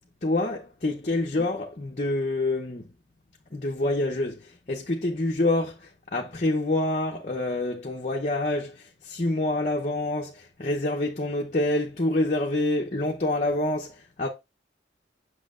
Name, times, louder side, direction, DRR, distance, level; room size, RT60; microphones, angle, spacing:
voice 1, 0.2-2.9 3.5-14.3, left 2 dB, 40° left, 0.7 m, -27 dB
8.5 x 6.2 x 2.5 m
head